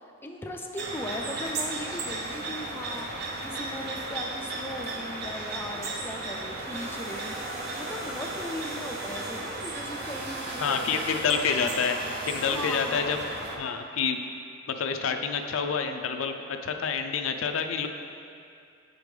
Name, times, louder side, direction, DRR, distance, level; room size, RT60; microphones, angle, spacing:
voice 1, 0.0-11.0 12.4-13.2, left 1 dB, 10° left, 0 dB, 0.4 m, -38 dB
sound 1, 0.8-13.6, right 2 dB, 55° right, 0.7 m, -35 dB
sound 2, 6.6-13.0, equal, 75° right, 1.6 m, -42 dB
voice 2, 10.6-12.0 12.3-13.2 13.6-14.2 14.7-16.4 16.6-17.9, left 6 dB, 75° left, 5 dB, 0.4 m, -28 dB
8.2 x 5.1 x 3.2 m, 2.5 s
head